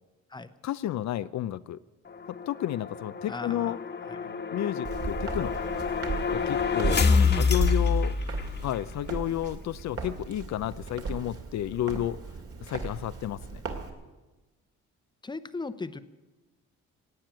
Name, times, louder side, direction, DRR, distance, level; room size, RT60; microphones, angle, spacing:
voice 1, 0.6-1.8 2.3-3.8 4.5-5.6 6.3-8.1 8.6-12.2 12.6-13.6, left 12 dB, 65° left, 14 dB, 0.5 m, -31 dB
sound 1, 2.1-8.8, left 5 dB, 35° left, 1.3 m, -27 dB
voice 2, 3.3-3.8 4.1-4.2 6.9-7.5 15.2-16.0, left 3 dB, 15° left, 12 dB, 0.8 m, -35 dB
Walk footsteps, 4.8-13.9, right 4 dB, 50° right, 2.4 m, -36 dB
17.5 x 8.9 x 9.0 m, 1.2 s
cardioid pair, 90°, 30 cm